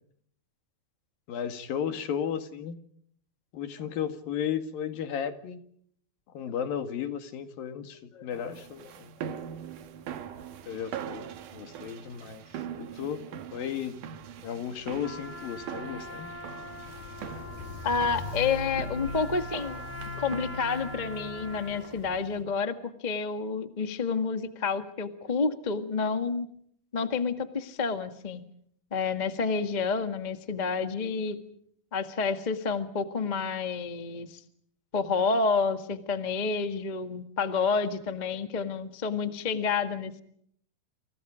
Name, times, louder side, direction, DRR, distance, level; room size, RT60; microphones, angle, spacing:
voice 1, 1.3-2.8 3.5-5.6 6.3-9.3 10.7-11.3 11.5-12.4 12.8-13.2 13.5-14.0 14.4-16.3, left 8 dB, 75° left, 8 dB, 3.8 m, -34 dB
voice 2, 8.2-8.5 17.8-19.8 20.2-26.5 26.9-28.4 28.9-31.4 31.9-34.4 34.9-40.2, left 5 dB, 55° left, 8 dB, 0.4 m, -29 dB
sound 1, 8.3-22.2, right 9 dB, 65° right, 2.8 m, -42 dB
Walk footsteps, 14.8-22.4, left 2 dB, 90° left, 4.6 m, -42 dB
Trumpet, 15.0-22.0, left 1 dB, 5° left, 2.8 m, -43 dB
30.0 x 28.5 x 5.1 m, 0.66 s
omnidirectional pair, 4.2 m